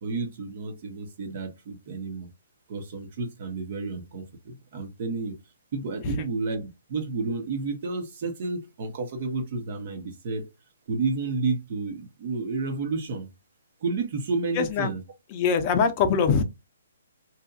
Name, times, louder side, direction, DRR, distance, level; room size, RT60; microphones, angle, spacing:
voice 1, 0.0-2.3 2.7-5.4 5.7-10.4 10.9-13.3 13.8-15.0, right 3 dB, 45° right, 0.9 m, -31 dB
voice 2, 14.5-14.9 15.3-16.4, left 6 dB, 35° left, 0.5 m, -23 dB
2.8 x 2.5 x 2.3 m
hypercardioid pair, 140°, 0 cm